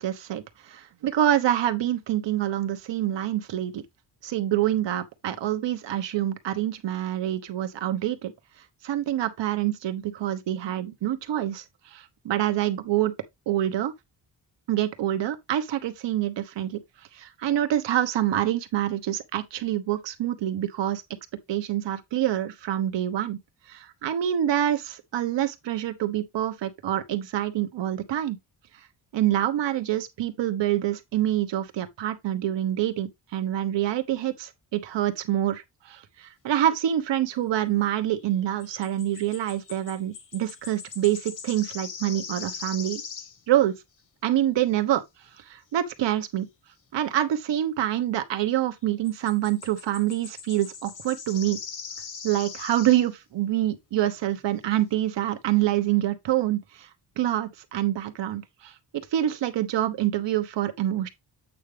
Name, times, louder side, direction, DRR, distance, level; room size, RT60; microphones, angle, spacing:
voice 1, 0.0-3.8 4.2-8.3 8.8-11.6 11.9-13.1 13.5-13.9 14.7-16.8 17.2-21.0 21.5-23.4 23.7-28.4 29.1-35.6 35.9-43.0 43.5-43.7 44.2-45.0 45.5-46.5 46.9-51.6 52.2-56.9 57.2-58.7 59.1-61.1, right 12 dB, 85° right, 1.2 m, -26 dB
sound 1, 38.1-38.3 38.6-43.4 49.1-53.1 54.4-54.5 54.8-54.9, left 6 dB, 45° left, 1.2 m, -40 dB
8.4 x 4.8 x 3.3 m
wide cardioid pair, 145°, 42 cm